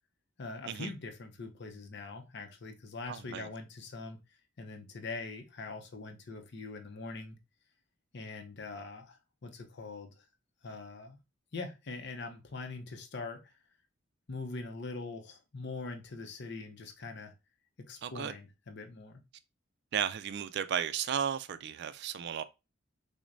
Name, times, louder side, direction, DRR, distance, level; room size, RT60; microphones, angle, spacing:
voice 1, 0.4-4.2 4.6-7.4 8.1-10.3 10.6-11.2 11.5-13.5 14.3-17.3 17.8-19.2, left 3 dB, 60° left, 0.7 m, -43 dB
voice 2, 3.1-3.5 18.0-18.4 19.9-22.4, right 8 dB, 60° right, 0.3 m, -34 dB
6.1 x 2.1 x 2.5 m
head